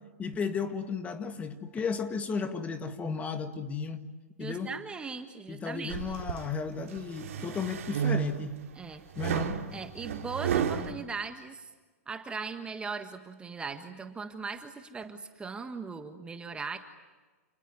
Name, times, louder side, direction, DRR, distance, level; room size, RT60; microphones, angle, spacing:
voice 1, 0.2-4.0 4.4-4.7 5.5-8.6 9.2-9.6, left 5 dB, 20° left, 8 dB, 1.9 m, -34 dB
voice 2, 4.4-6.0 8.7-9.0 9.7-11.7 12.1-16.8, right 4 dB, 10° right, 7 dB, 1.6 m, -39 dB
sound 1, 5.9-6.5 7.0-8.6 9.2-10.9, right 8 dB, 65° right, 2.5 m, -31 dB
29.5 x 19.5 x 9.6 m, 1.3 s
hypercardioid pair, 120°, 8 cm